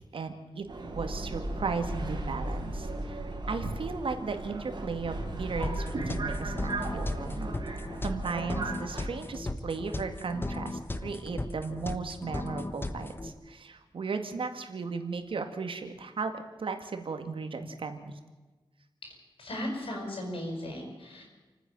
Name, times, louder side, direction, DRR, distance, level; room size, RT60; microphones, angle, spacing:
voice 1, 0.1-3.2 3.5-7.5 8.0-18.1, right 4 dB, 70° right, 7 dB, 2.2 m, -36 dB
Subway metro underground, 0.7-9.1, right 2 dB, 55° right, 4.2 m, -36 dB
sound 1, 5.6-13.3, left 2 dB, 25° left, 1.2 m, -37 dB
voice 2, 19.0-21.2, left 1 dB, 75° left, 1 dB, 7.1 m, -37 dB
29.0 x 9.8 x 9.1 m, 1.3 s
wide cardioid pair, 130°, 9 cm